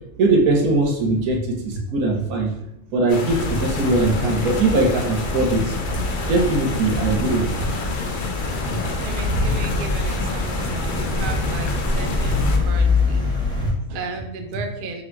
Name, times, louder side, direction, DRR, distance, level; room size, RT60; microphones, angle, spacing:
voice 1, 0.2-2.5 2.9-5.8 6.3-7.5 13.6-13.7, right 2 dB, 90° right, 1 dB, 1.3 m, -20 dB
sound 1, 3.1-12.6, left 3 dB, 55° left, 0.5 m, -29 dB
sound 2, 3.3-13.7, left 2 dB, 5° left, 0.6 m, -25 dB
voice 2, 9.0-13.2 13.9-15.0, right 4 dB, 60° right, 4 dB, 0.5 m, -34 dB
4.3 x 2.2 x 4.4 m, 0.79 s
omnidirectional pair, 1.5 m